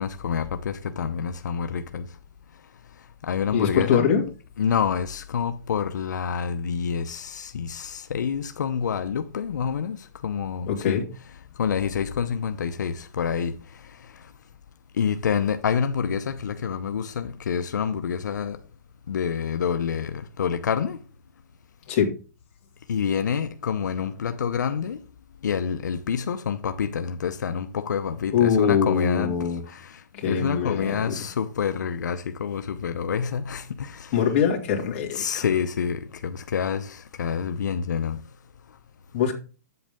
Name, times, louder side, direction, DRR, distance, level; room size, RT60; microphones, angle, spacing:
voice 1, 0.0-2.1 3.2-4.1 4.6-11.0 11.6-13.6 15.0-18.6 19.1-21.0 22.9-25.0 25.4-29.4 29.7-34.1 34.8-38.2, left 7 dB, 85° left, 0.7 m, -27 dB
voice 2, 3.5-4.2 10.7-11.0 21.9-22.1 28.3-29.6 30.1-31.2 34.1-35.5 39.1-39.3, left 7 dB, 35° left, 2.5 m, -23 dB
8.7 x 7.9 x 3.6 m
hypercardioid pair, 160°, 9 cm